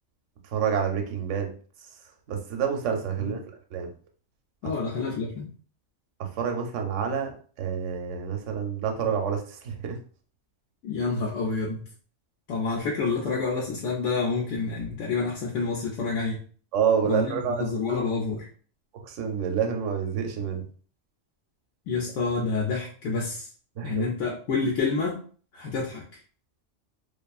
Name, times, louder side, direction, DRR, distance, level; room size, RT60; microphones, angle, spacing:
voice 1, 0.5-1.5 2.3-3.4 3.7-3.9 6.2-10.0 16.7-18.1 18.9-20.6 23.8-24.0, right 7 dB, 80° right, 4 dB, 0.9 m, -28 dB
voice 2, 4.6-5.5 10.8-11.8 12.5-16.4 17.0-18.5 21.9-23.5 23.8-25.2 25.5-26.1, left 4 dB, 75° left, -2 dB, 0.9 m, -28 dB
2.5 x 2.4 x 2.3 m, 0.43 s
omnidirectional pair, 1.3 m